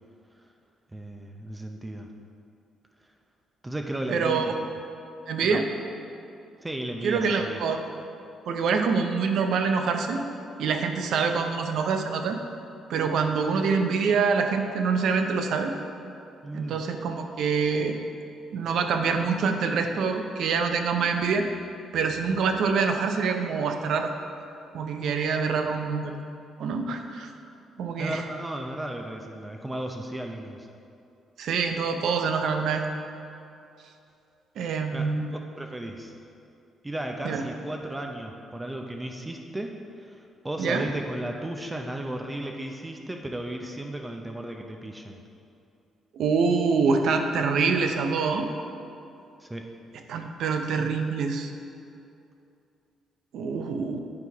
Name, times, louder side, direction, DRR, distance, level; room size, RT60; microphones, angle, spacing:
voice 1, 0.9-2.1 3.6-4.4 5.5-5.6 6.6-7.6 16.4-16.8 28.0-30.7 34.9-35.1 35.3-36.2 36.8-39.7 40.0-45.1 49.4-49.7, right 1 dB, 15° right, 3 dB, 0.5 m, -35 dB
voice 2, 4.1-4.5 5.3-5.7 7.0-7.8 8.5-10.2 10.6-12.4 12.9-15.7 16.5-18.0 18.5-21.5 21.9-24.1 24.7-26.1 26.6-27.3 27.8-28.2 31.4-32.8 34.6-35.3 37.2-37.4 40.6-40.9 46.1-48.5 50.1-51.5 53.3-54.0, right 5 dB, 75° right, 6 dB, 0.6 m, -25 dB
8.7 x 4.0 x 4.5 m, 2.6 s
cardioid pair, 90°, 0 cm